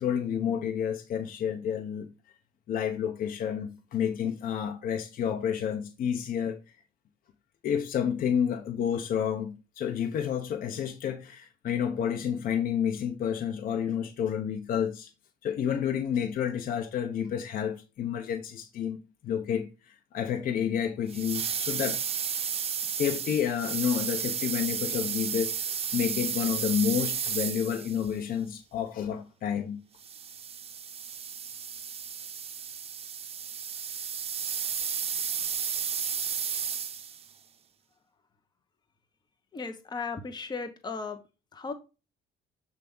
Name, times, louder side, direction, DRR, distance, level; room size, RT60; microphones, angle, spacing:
voice 1, 0.0-2.1 2.7-6.6 7.6-15.1 15.4-19.0 19.2-22.0 22.9-25.6 25.9-29.8, left 8 dB, 55° left, 0.9 m, -30 dB
sound 1, 21.1-28.1 30.0-37.3, right 7 dB, 35° right, 0.8 m, -33 dB
voice 2, 39.5-41.2 41.5-41.7, left 4 dB, 25° left, 1.0 m, -36 dB
7.5 x 3.5 x 5.4 m
cardioid pair, 110°, 17 cm